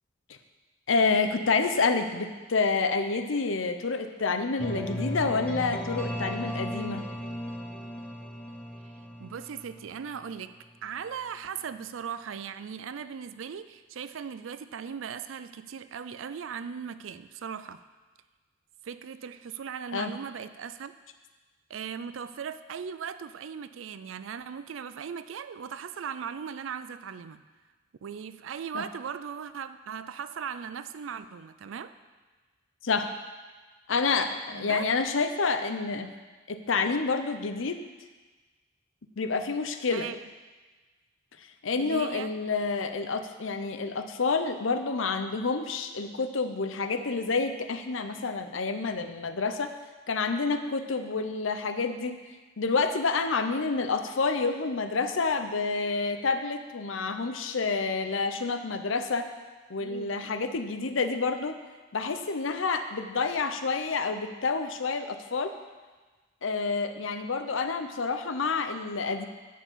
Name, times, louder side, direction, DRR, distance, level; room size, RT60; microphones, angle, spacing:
voice 1, 0.9-7.0 19.9-20.1 28.7-28.8 32.8-33.2 33.9-36.1 36.5-37.8 39.2-40.1 41.4-49.7 50.1-52.2 52.6-59.3 59.7-61.6 61.9-65.5 66.4-69.3, left 4 dB, 85° left, 8 dB, 0.7 m, -28 dB
sound 1, 4.6-10.5, equal, 5° left, 0.9 m, -36 dB
voice 2, 8.8-17.8 18.8-20.9 21.7-27.4 28.0-31.9 34.5-34.9 39.9-40.3 41.8-42.3 59.8-60.1, right 7 dB, 85° right, 12 dB, 0.4 m, -38 dB
10.5 x 4.7 x 7.3 m, 1.3 s
head